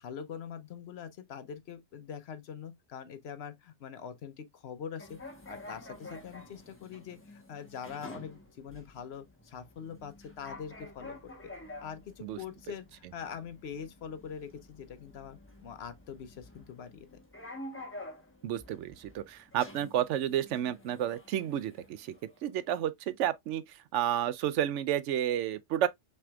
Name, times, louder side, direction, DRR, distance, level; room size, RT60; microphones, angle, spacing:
voice 1, 0.0-5.2 5.5-11.2 11.8-17.1, left 7 dB, 65° left, 0.9 m, -43 dB
sound 1, 5.0-22.5, left 1 dB, 10° left, 0.9 m, -49 dB
voice 2, 18.4-22.2 22.4-25.9, right 11 dB, 85° right, 0.9 m, -31 dB
5.9 x 3.4 x 2.3 m
omnidirectional pair, 1.2 m